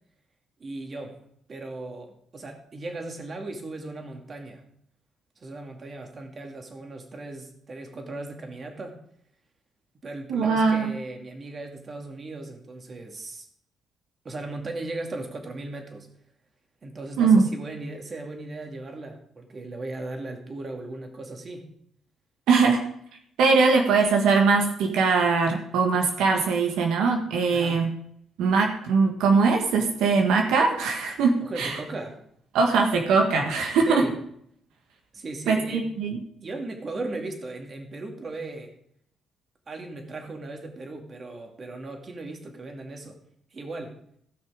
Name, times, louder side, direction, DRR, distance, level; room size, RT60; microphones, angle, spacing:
voice 1, 0.6-1.2 1.5-4.6 5.4-9.0 9.9-13.4 14.2-16.1 16.8-21.7 27.5-27.9 31.4-32.2 33.9-34.1 35.1-35.9 36.4-38.7 39.7-43.2 43.5-44.0, right 2 dB, 40° right, 3 dB, 2.4 m, -37 dB
voice 2, 10.3-10.9 17.2-17.4 22.5-22.8 23.4-27.9 28.4-31.8 32.5-34.0 35.5-36.2, right 4 dB, 90° right, 2 dB, 1.6 m, -21 dB
16.0 x 6.1 x 5.1 m, 0.69 s
cardioid pair, 90°, 0 cm